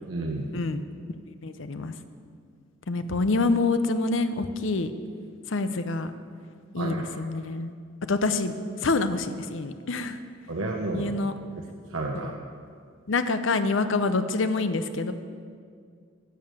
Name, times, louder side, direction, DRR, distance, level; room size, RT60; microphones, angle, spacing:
voice 1, 0.1-0.5 6.8-7.2 10.5-11.2 11.9-12.4, right 2 dB, 80° right, -1 dB, 0.9 m, -31 dB
voice 2, 1.4-1.9 2.9-4.9 5.5-6.1 6.7-7.7 8.1-8.5 8.8-10.2 10.9-11.3 12.1-12.3 13.1-15.1, left 3 dB, 65° left, 10 dB, 0.7 m, -26 dB
11.5 x 7.0 x 7.6 m, 2.2 s
head